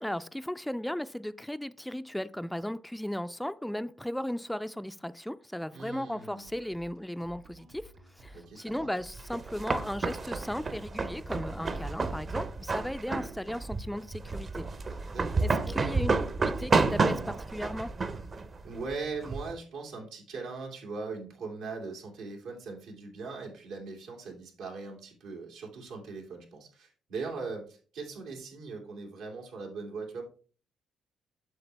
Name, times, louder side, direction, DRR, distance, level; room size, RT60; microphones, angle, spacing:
voice 1, 0.0-14.7 15.4-16.1 16.4-18.0, equal, 5° left, 0.3 m, -36 dB
voice 2, 5.7-6.5 8.3-8.9 15.1-16.2 18.6-30.2, right 4 dB, 90° right, 2.6 m, -40 dB
sound 1, 6.4-15.9, right 1 dB, 70° right, 2.9 m, -55 dB
sound 2, 9.1-19.5, right 4 dB, 40° right, 0.7 m, -30 dB
8.0 x 6.5 x 3.4 m
cardioid pair, 90°, 0 cm